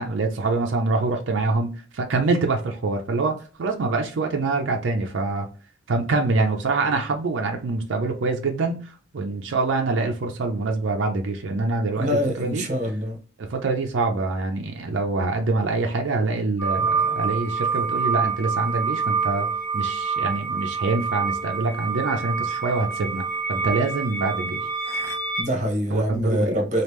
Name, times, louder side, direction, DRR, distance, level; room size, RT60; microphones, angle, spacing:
voice 1, 0.0-5.5 5.9-12.7 13.4-19.5 19.7-23.2 23.5-24.6 25.9-26.7, right 3 dB, 85° right, 0.5 m, -25 dB
voice 2, 12.0-13.2 25.4-26.8, equal, 40° right, 0.9 m, -24 dB
sound 1, 16.6-25.4, right 5 dB, 55° left, 1.0 m, -26 dB
3.1 x 2.4 x 3.3 m
head